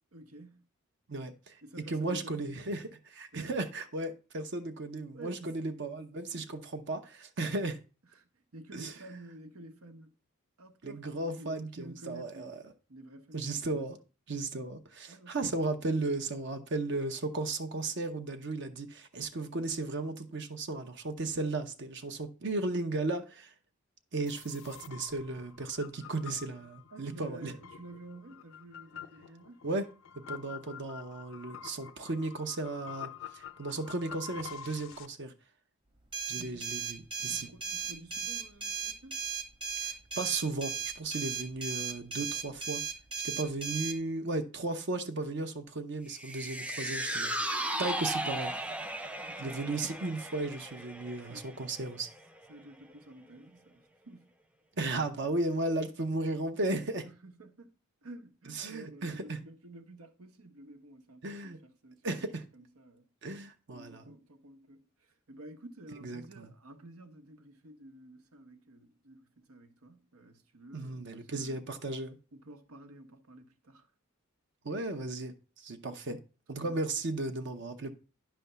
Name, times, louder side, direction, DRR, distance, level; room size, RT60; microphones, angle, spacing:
voice 1, 0.1-0.7 1.6-2.6 3.3-3.6 5.1-5.7 6.3-6.5 8.1-10.1 10.6-12.6 12.9-13.9 15.1-15.8 26.9-29.7 36.3-36.8 37.3-39.2 49.2-49.7 51.3-51.7 52.5-54.3 57.0-57.7 58.0-62.3 62.5-63.1 63.7-71.6 72.3-73.9 76.6-76.8, right 2 dB, 90° right, 1.2 m, -51 dB
voice 2, 1.1-1.6 1.9-7.8 8.7-8.9 10.8-12.6 13.3-14.0 14.3-23.5 24.1-27.5 29.6-29.9 30.3-35.3 36.3-37.5 39.8-39.9 40.2-42.8 43.2-48.5 49.4-52.1 54.8-57.0 58.5-59.4 61.2-61.6 62.0-62.4 63.2-64.1 66.0-66.5 70.7-72.2 74.6-76.2 76.5-77.9, right 2 dB, 55° right, 0.7 m, -35 dB
sound 1, 24.3-35.1, left 8 dB, 65° left, 0.5 m, -48 dB
sound 2, 36.1-44.0, right 6 dB, 25° right, 1.0 m, -36 dB
sound 3, 46.1-52.6 52.9-53.0, right 1 dB, 5° right, 0.5 m, -36 dB
10.0 x 3.4 x 6.7 m
head